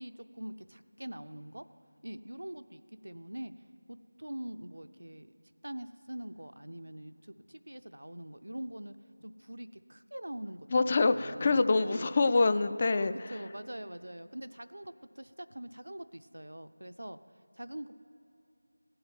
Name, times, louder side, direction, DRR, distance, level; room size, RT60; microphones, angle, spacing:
voice 1, 0.0-1.6 2.0-5.3 5.6-10.7 11.0-12.1 12.8-17.2 17.5-17.9, right 1 dB, 65° right, 11 dB, 0.5 m, -43 dB
voice 2, 10.7-13.1, left 3 dB, 25° left, 12 dB, 0.3 m, -25 dB
17.0 x 7.8 x 9.0 m, 3.0 s
figure-of-eight pair, 170°, 0 cm